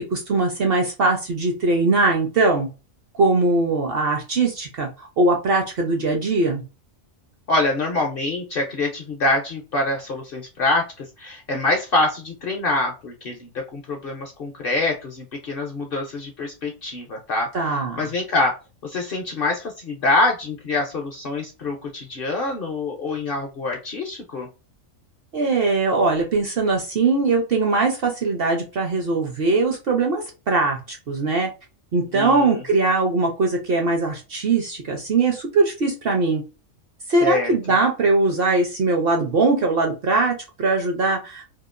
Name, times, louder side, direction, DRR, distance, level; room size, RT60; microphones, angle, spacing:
voice 1, 0.0-2.7 3.1-6.6 17.5-18.1 25.3-31.5 31.9-36.4 37.1-41.4, right 3 dB, 55° right, 2 dB, 0.7 m, -21 dB
voice 2, 7.5-18.5 18.8-24.5 32.1-32.6 37.2-37.5, left 2 dB, 55° left, 2 dB, 0.6 m, -25 dB
2.8 x 2.3 x 2.4 m, 0.29 s
omnidirectional pair, 1.4 m